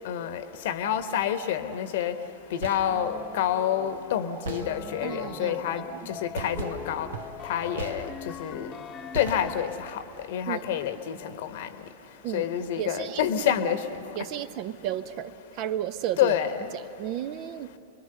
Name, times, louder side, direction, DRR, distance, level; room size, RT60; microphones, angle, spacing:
voice 1, 0.0-2.1 2.5-7.1 7.4-8.1 8.4-8.7 9.1-10.0 10.3-11.7 12.3-13.8 16.2-16.7, left 9 dB, 55° left, 11 dB, 1.2 m, -28 dB
sound 1, 2.4-3.1 4.4-5.2 6.3-8.5 9.1-9.9, right 4 dB, 65° right, 1.1 m, -39 dB
sound 2, 2.9-10.2, left 6 dB, 25° left, 1.0 m, -41 dB
voice 2, 5.0-6.1 10.5-10.8 12.2-12.5 12.8-13.2 13.5-13.6 14.1-16.4 16.7-17.7, right 11 dB, 40° right, 13 dB, 0.8 m, -33 dB
30.0 x 22.0 x 6.8 m, 2.9 s
figure-of-eight pair, 90°, 0 cm